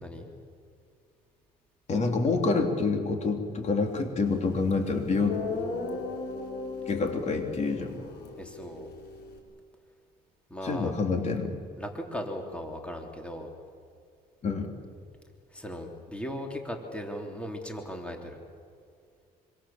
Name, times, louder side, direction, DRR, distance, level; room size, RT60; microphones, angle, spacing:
voice 1, 0.0-0.3 8.4-8.9 10.5-10.9 11.8-13.5 15.5-18.4, equal, 5° left, 2 dB, 3.2 m, -37 dB
voice 2, 1.9-5.4 6.9-7.9 10.6-11.6 14.4-14.7, left 4 dB, 40° left, 4 dB, 3.3 m, -27 dB
Guitar, 4.7-4.8 5.3-9.4, left 4 dB, 75° left, 4.6 m, -37 dB
26.0 x 25.5 x 7.3 m, 2.3 s
cardioid pair, 110°, 17 cm